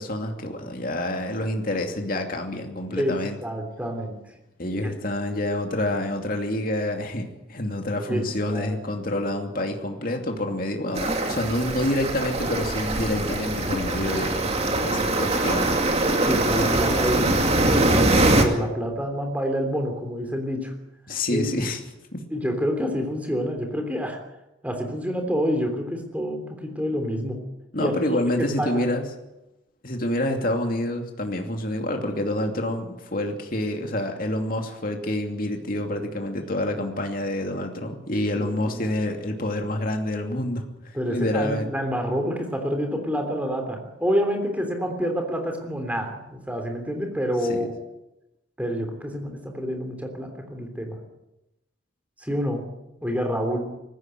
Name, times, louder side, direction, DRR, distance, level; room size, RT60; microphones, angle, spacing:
voice 1, 0.0-3.4 4.6-14.4 14.8-15.8 21.1-21.8 22.1-22.2 27.7-29.1 29.8-41.7 47.5-47.7, left 1 dB, 45° left, 3 dB, 2.7 m, -27 dB
voice 2, 3.0-4.2 4.8-4.9 8.1-8.8 16.2-17.9 18.4-20.7 21.3-21.4 22.3-24.2 24.6-27.4 27.8-28.9 38.3-38.9 40.9-47.7 48.6-51.0 52.2-52.7 53.0-53.6, equal, 5° right, 4 dB, 3.3 m, -28 dB
sound 1, 11.0-18.4, right 2 dB, 30° right, 2.4 m, -22 dB
19.5 x 15.5 x 9.3 m, 0.94 s
head